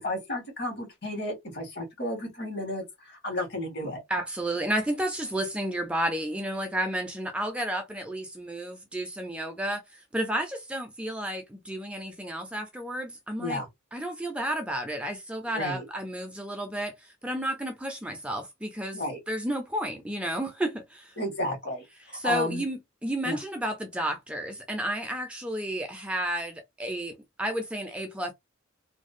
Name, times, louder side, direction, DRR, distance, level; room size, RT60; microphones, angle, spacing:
voice 1, 0.0-4.0 13.4-13.7 15.5-15.9 18.9-19.2 21.2-22.6 23.2-23.4, left 1 dB, 55° left, 1.3 m, -33 dB
voice 2, 4.1-13.6 13.9-19.0 19.3-21.1 22.1-27.1 27.4-28.3, right 1 dB, 5° right, 0.3 m, -32 dB
2.5 x 2.0 x 2.4 m
head